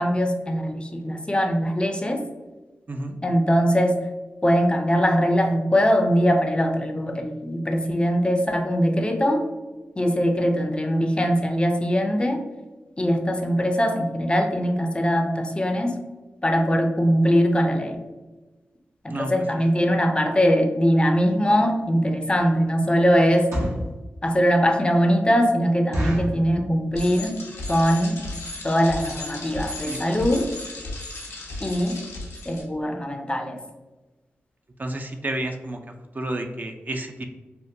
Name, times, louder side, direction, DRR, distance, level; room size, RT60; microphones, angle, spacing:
voice 1, 0.0-2.2 3.2-4.0 4.4-9.4 10.0-12.4 13.0-16.0 16.4-18.1 19.0-23.5 24.2-27.4 27.7-28.2 28.6-30.5 31.6-32.0 32.5-33.6, equal, 20° left, 5 dB, 0.4 m, -21 dB
voice 2, 2.9-3.2 19.1-19.3 29.8-30.0 34.8-35.8 36.1-37.2, right 1 dB, 40° right, 4 dB, 0.4 m, -30 dB
sound 1, 21.7-21.8 22.3-22.6 23.3-23.9 24.5-24.6 24.9-25.0 25.3-25.4 25.9-26.4 27.0-27.3 27.6-27.7 27.9-28.2 28.7-28.8 29.0-29.2 29.6-29.7 29.9-30.0, equal, 80° right, 0.9 m, -28 dB
Bicycle, 26.9-32.6, left 2 dB, 85° left, 0.6 m, -35 dB
3.5 x 2.2 x 2.6 m, 1.2 s
cardioid pair, 45°, 5 cm